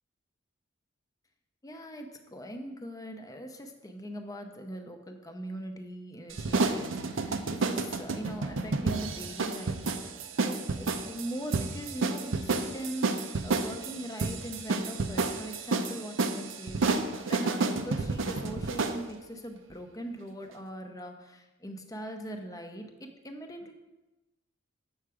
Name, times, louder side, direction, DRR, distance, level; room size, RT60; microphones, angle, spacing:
voice 1, 1.6-9.9 10.4-17.0 17.3-23.7, right 1 dB, 20° left, 5 dB, 0.7 m, -41 dB
sound 1, 6.3-19.0, right 3 dB, 70° right, 0.6 m, -30 dB
7.9 x 5.7 x 4.9 m, 1.1 s
head